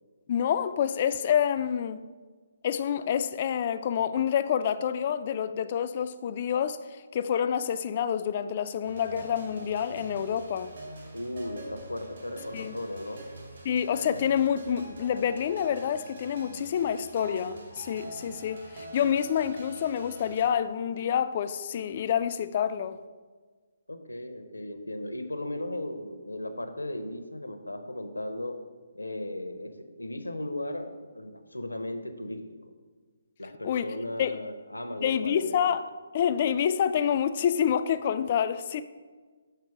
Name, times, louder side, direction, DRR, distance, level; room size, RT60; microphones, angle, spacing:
voice 1, 0.3-2.0 2.6-6.8 7.1-10.7 12.5-12.8 13.6-23.0 33.6-34.4 35.0-35.9 36.1-38.8, left 8 dB, 35° left, 0.3 m, -27 dB
sound 1, 8.8-20.5, right 1 dB, 55° right, 2.1 m, -45 dB
voice 2, 11.1-13.2 23.9-28.6 28.9-32.4 33.4-35.6, left 1 dB, 80° left, 0.8 m, -36 dB
6.8 x 4.5 x 4.7 m
figure-of-eight pair, 140°, 0 cm